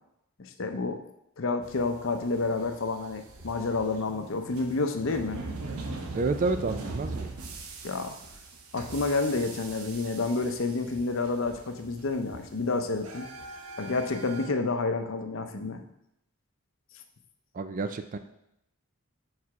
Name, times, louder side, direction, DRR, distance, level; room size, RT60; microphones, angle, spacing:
voice 1, 0.4-1.0 1.4-5.4 7.8-8.1 8.7-13.3 13.8-15.8, left 3 dB, 60° left, 6 dB, 0.7 m, -29 dB
sound 1, 1.6-14.5, right 3 dB, 85° right, 0.9 m, -41 dB
sound 2, 1.7-1.9 2.6-2.7 3.4-3.5 4.2-4.3 5.0-5.1 5.8-5.9 6.6-6.8 7.4-7.6 8.2-8.4, equal, 70° right, 2.0 m, -57 dB
voice 2, 6.1-7.3 17.5-18.2, right 3 dB, 40° right, 9 dB, 0.4 m, -29 dB
4.8 x 4.8 x 5.7 m, 0.81 s
head